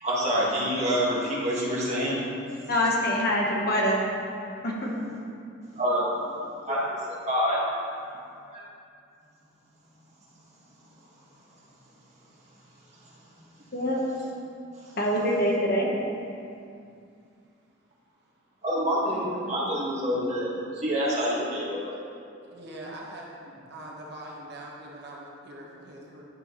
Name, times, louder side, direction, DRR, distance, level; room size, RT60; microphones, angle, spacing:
voice 1, 0.0-2.2 5.7-6.8 7.1-7.6 8.5-8.6 18.6-21.9, equal, 35° right, -6 dB, 1.6 m, -27 dB
voice 2, 2.7-4.1 4.6-4.9 13.7-14.0 15.0-15.9, equal, 50° left, -2 dB, 1.1 m, -25 dB
voice 3, 19.0-19.7 21.7-21.8 22.5-23.3 23.7-26.3, right 1 dB, 55° right, -3 dB, 1.2 m, -42 dB
10.5 x 6.2 x 3.1 m, 2.5 s
head